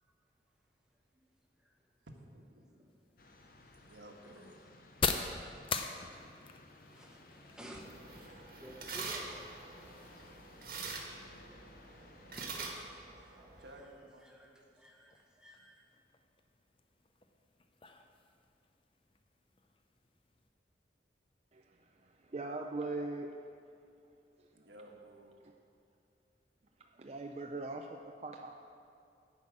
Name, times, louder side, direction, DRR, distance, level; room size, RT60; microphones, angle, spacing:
voice 1, 2.3-2.9 3.8-4.8 5.9-6.1 6.4-6.5 13.6-14.8 24.5-25.4, right 1 dB, 85° right, 1 dB, 1.4 m, -56 dB
sound 1, 2.9-20.5, left 5 dB, 30° left, 0.5 m, -45 dB
sound 2, 3.2-12.6, left 2 dB, 55° left, 0.8 m, -58 dB
voice 2, 4.6-5.0 6.9-9.6 11.4-11.6 12.4-13.9 14.2-15.9, equal, 5° right, -1 dB, 1.1 m, -54 dB
sound 3, 7.7-13.8, right 4 dB, 55° right, 1.4 m, -45 dB
voice 3, 22.0-23.3 27.0-28.5, right 2 dB, 35° right, 2 dB, 0.4 m, -40 dB
10.5 x 5.6 x 8.5 m, 2.5 s
head